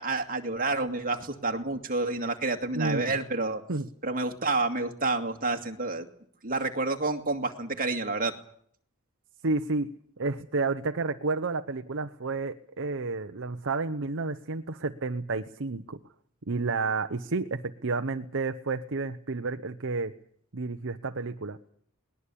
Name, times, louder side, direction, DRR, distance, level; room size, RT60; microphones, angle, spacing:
voice 1, 0.0-3.6 4.0-6.1 6.4-8.3, right 3 dB, 40° right, 4 dB, 2.3 m, -29 dB
voice 2, 2.7-3.2 3.7-3.9 9.4-16.0 16.5-20.1 20.5-21.6, right 3 dB, 60° right, 7 dB, 0.9 m, -31 dB
21.0 x 20.0 x 8.6 m, 0.63 s
head